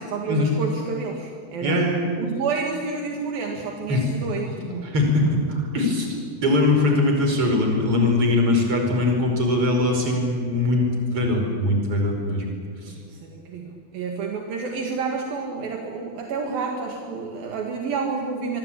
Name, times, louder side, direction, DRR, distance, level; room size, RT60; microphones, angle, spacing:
voice 1, 0.0-1.9 2.2-4.9 12.9-18.6, right 5 dB, 70° right, 1 dB, 3.6 m, -29 dB
voice 2, 1.6-2.0 3.9-4.0 4.6-6.1 6.4-12.5 12.8-12.9, left 2 dB, 35° right, 2 dB, 5.8 m, -21 dB
26.5 x 24.0 x 8.8 m, 2.1 s
omnidirectional pair, 4.5 m